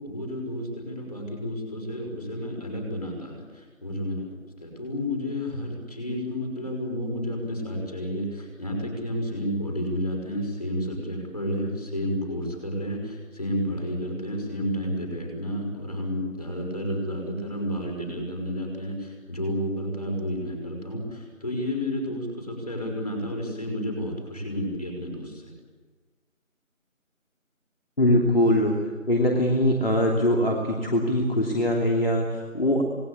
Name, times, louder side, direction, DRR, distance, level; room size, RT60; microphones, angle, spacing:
voice 1, 0.0-4.3 4.6-25.5, equal, 30° left, 1 dB, 5.5 m, -31 dB
voice 2, 28.0-28.7 29.1-32.8, left 1 dB, 45° left, -1 dB, 3.2 m, -22 dB
27.5 x 19.5 x 8.5 m, 1.4 s
figure-of-eight pair, 175°, 41 cm